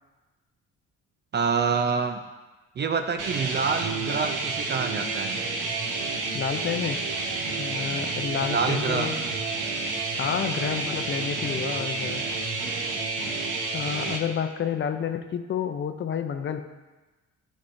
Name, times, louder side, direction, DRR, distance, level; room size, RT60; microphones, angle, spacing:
voice 1, 1.3-2.2 2.8-5.4 8.5-9.1, right 5 dB, 35° right, 7 dB, 0.4 m, -26 dB
sound 1, 3.2-14.2, right 3 dB, 85° right, 1.0 m, -30 dB
voice 2, 6.3-7.0 7.6-9.2 10.2-12.2 13.7-16.6, left 8 dB, 40° left, 8 dB, 0.6 m, -30 dB
11.5 x 4.2 x 2.6 m, 1.2 s
cardioid pair, 90°, 30 cm